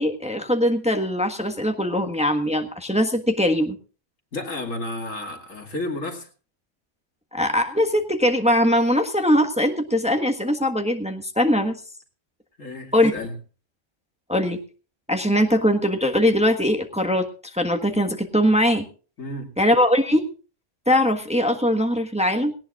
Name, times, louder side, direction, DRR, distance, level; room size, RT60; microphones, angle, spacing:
voice 1, 0.0-3.8 7.3-11.8 12.9-13.1 14.3-14.6 15.1-18.9 19.6-20.3 20.9-22.5, equal, 5° right, 4 dB, 1.3 m, -21 dB
voice 2, 4.3-6.3 12.6-13.3 19.2-19.5, left 2 dB, 90° left, 2 dB, 2.7 m, -32 dB
18.0 x 18.0 x 2.4 m, 0.37 s
omnidirectional pair, 1.3 m